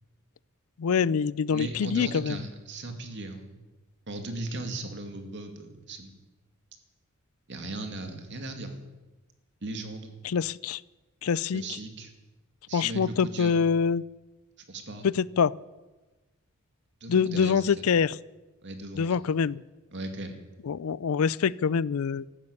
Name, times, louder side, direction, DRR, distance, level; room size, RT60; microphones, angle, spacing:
voice 1, 0.8-2.4 10.2-10.8 11.2-11.6 12.7-14.0 15.0-15.5 17.1-18.2 19.0-19.6 20.6-22.3, left 6 dB, 80° left, 21 dB, 0.4 m, -25 dB
voice 2, 1.5-3.6 4.1-6.2 7.5-8.8 9.6-10.1 11.5-12.1 12.7-13.6 14.7-15.1 17.0-17.9 18.6-19.2 19.9-20.4, right 2 dB, 55° right, 5 dB, 2.3 m, -37 dB
14.0 x 12.0 x 8.5 m, 1.2 s
head